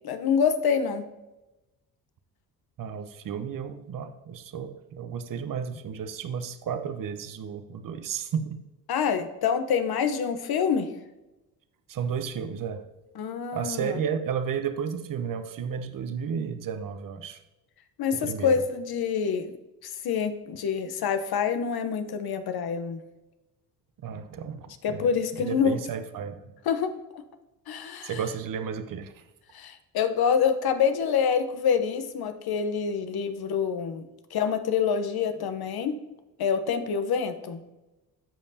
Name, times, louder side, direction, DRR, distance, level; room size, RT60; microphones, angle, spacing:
voice 1, 0.0-1.1 8.9-10.9 13.2-14.0 18.0-19.5 19.8-23.0 24.8-25.8 26.7-27.2 27.7-28.1 29.5-34.0 34.3-36.0 36.4-37.6, left 7 dB, 55° left, 9 dB, 1.0 m, -26 dB
voice 2, 2.8-8.6 11.9-12.8 13.5-17.4 18.1-18.6 24.0-26.5 28.0-29.2, right 7 dB, 45° right, 9 dB, 0.9 m, -33 dB
14.5 x 5.2 x 2.8 m, 1.0 s
hypercardioid pair, 55°, 45 cm